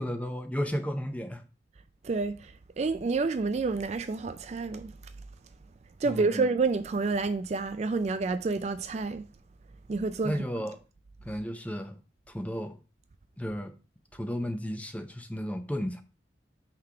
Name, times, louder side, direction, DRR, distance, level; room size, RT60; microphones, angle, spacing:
voice 1, 0.0-1.4 6.1-6.5 10.2-10.8 11.3-12.0 12.3-12.7 13.4-13.7 14.1-16.0, equal, 10° left, 0.6 m, -33 dB
voice 2, 2.0-4.9 6.0-9.3 9.9-10.4, right 4 dB, 35° right, 0.3 m, -29 dB
5.9 x 3.3 x 5.6 m
head